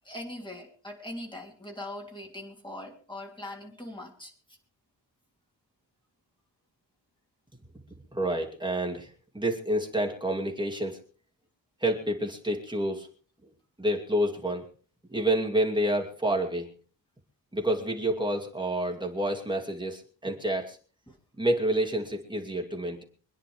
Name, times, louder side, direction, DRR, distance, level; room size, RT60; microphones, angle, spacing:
voice 1, 0.0-4.6 21.1-21.2, left 1 dB, 10° left, 0 dB, 3.2 m, -41 dB
voice 2, 8.1-9.1 9.3-11.0 11.8-13.1 13.8-14.6 15.1-16.7 17.5-20.8 21.4-23.0, right 1 dB, 10° right, 1 dB, 2.5 m, -28 dB
25.5 x 10.0 x 3.5 m, 0.41 s
wide cardioid pair, 180°, 44 cm